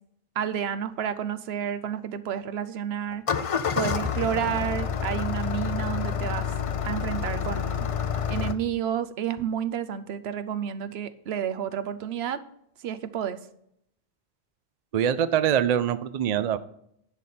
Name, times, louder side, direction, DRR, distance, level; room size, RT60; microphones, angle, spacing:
voice 1, 0.4-3.2 3.7-6.5 6.8-7.9 8.3-12.4 12.8-13.4, right 9 dB, 85° right, 12 dB, 0.9 m, -30 dB
Engine starting, 3.1-8.5, left 7 dB, 45° left, 0.5 m, -28 dB
voice 2, 14.9-16.6, right 9 dB, 50° right, 13 dB, 0.5 m, -24 dB
10.5 x 4.2 x 6.7 m, 0.72 s
omnidirectional pair, 1.0 m